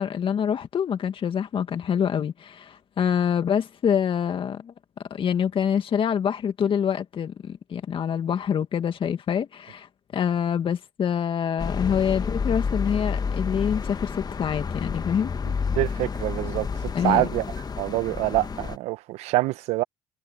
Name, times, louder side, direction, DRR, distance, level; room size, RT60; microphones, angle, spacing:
voice 1, 0.0-4.7 5.1-15.3 16.9-17.3, left 8 dB, 50° left, 2.1 m, -26 dB
sound 1, 11.6-18.8, left 5 dB, 35° left, 1.5 m, -30 dB
voice 2, 15.7-17.4 17.8-19.8, right 18 dB, 75° right, 1.0 m, -25 dB
hypercardioid pair, 60°, 11 cm